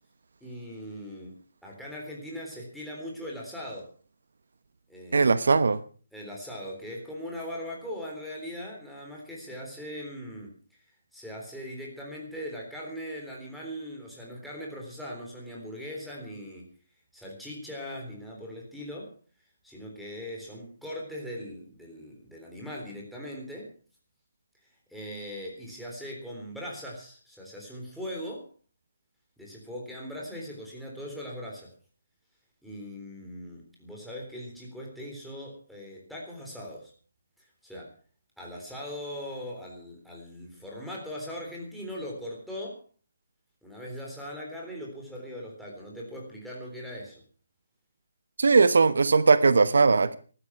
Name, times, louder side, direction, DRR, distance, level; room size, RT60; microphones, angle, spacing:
voice 1, 0.4-1.4 1.6-3.9 4.9-5.3 6.1-10.5 11.1-16.7 17.1-19.1 19.6-23.7 24.9-28.5 29.4-31.7 32.6-36.9 37.6-38.0 38.4-42.8 43.6-47.2, equal, ahead, -4 dB, 3.7 m, -40 dB
voice 2, 5.1-5.8 48.4-50.2, right 4 dB, 75° right, 15 dB, 1.1 m, -19 dB
15.0 x 12.5 x 5.8 m, 0.40 s
hypercardioid pair, 170°, 0 cm